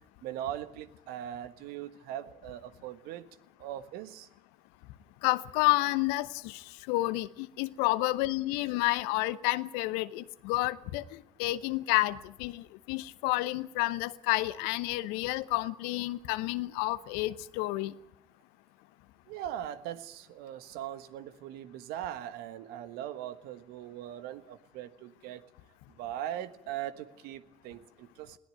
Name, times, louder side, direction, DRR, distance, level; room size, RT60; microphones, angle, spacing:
voice 1, 0.2-3.3 3.6-4.3 19.3-25.5 25.9-28.4, right 11 dB, 70° right, 1.4 m, -40 dB
voice 2, 5.2-17.9, left 19 dB, 75° left, 0.9 m, -30 dB
21.0 x 18.0 x 9.1 m
hypercardioid pair, 50°, 16 cm